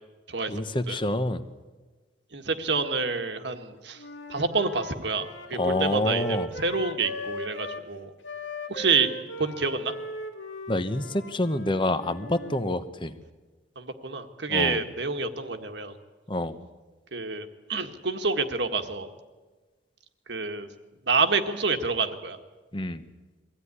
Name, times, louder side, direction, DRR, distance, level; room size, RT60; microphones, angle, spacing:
voice 1, 0.5-1.5 5.5-6.5 10.7-13.2 14.5-14.8 16.3-16.7 22.7-23.0, left 1 dB, 25° left, 11 dB, 1.0 m, -27 dB
voice 2, 2.3-4.0 4.3-8.1 8.7-9.1 9.4-9.9 13.7-16.0 17.1-19.1 20.3-20.7 21.1-22.4, right 4 dB, 65° right, 7 dB, 1.6 m, -28 dB
Wind instrument woodwind instrument, 4.0-7.9 8.2-12.6, left 1 dB, 80° left, 1.9 m, -38 dB
23.0 x 16.0 x 9.9 m, 1.3 s
head